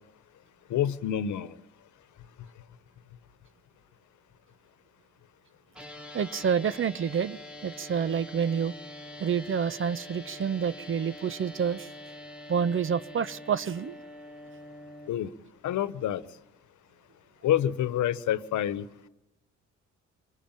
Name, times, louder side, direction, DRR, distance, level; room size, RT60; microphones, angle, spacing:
voice 1, 0.7-1.5 15.1-15.3 15.6-16.2 17.4-18.9, left 11 dB, 75° left, 14 dB, 1.2 m, -27 dB
sound 1, 5.7-15.1, left 1 dB, 5° right, 2.5 m, -45 dB
voice 2, 6.1-8.7 9.2-11.9 12.5-13.9, right 7 dB, 45° right, 15 dB, 0.9 m, -28 dB
25.5 x 21.0 x 9.0 m, 0.95 s
cardioid pair, 90°, 30 cm